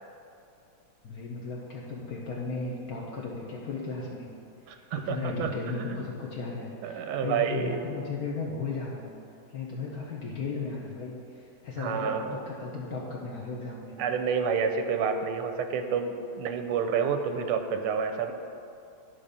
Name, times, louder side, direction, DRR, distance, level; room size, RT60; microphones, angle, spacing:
voice 1, 1.0-4.3 4.9-9.1 9.5-13.9, left 4 dB, 55° left, -4 dB, 1.1 m, -35 dB
voice 2, 4.7-5.5 5.9-6.0 6.8-7.8 11.8-12.4 14.0-18.3, right 6 dB, 85° right, 7 dB, 1.6 m, -29 dB
11.5 x 3.9 x 6.6 m, 2.6 s
omnidirectional pair, 2.3 m